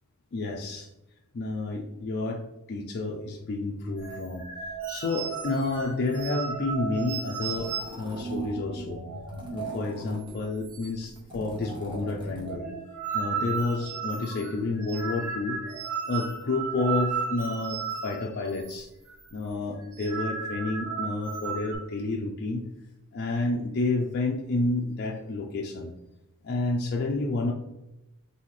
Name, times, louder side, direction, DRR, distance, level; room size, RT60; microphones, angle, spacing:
voice 1, 0.3-0.9 1.3-2.4 2.7-4.5 4.9-9.0 9.5-12.6 13.1-15.6 16.1-18.9 19.3-22.6 23.1-25.9 26.4-27.5, left 2 dB, 45° left, -1 dB, 0.4 m, -30 dB
sound 1, 4.0-9.9 10.2-10.4 10.6-11.2 11.5-18.8 19.1-19.3 19.8-21.8, right 5 dB, 70° right, 1.1 m, -35 dB
sound 2, 7.4-8.5 9.3-10.4 11.0-12.6, left 1 dB, 20° right, 1.1 m, -45 dB
4.1 x 3.4 x 3.1 m, 0.94 s
head